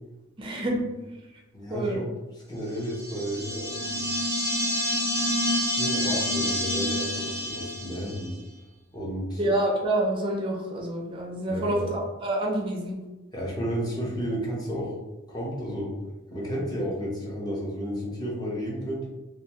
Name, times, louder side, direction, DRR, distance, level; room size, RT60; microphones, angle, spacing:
voice 1, 0.4-0.8 1.7-2.0 9.4-13.0, right 1 dB, 25° right, -1 dB, 0.4 m, -27 dB
voice 2, 1.5-2.1 2.5-4.0 5.7-8.4 8.9-9.4 11.5-11.9 13.3-15.0 15.3-15.9 16.3-19.1, equal, 20° left, -5 dB, 0.6 m, -32 dB
sound 1, 2.9-8.3, equal, 85° left, 0.8 m, -28 dB
2.2 x 2.2 x 2.8 m, 1.1 s
head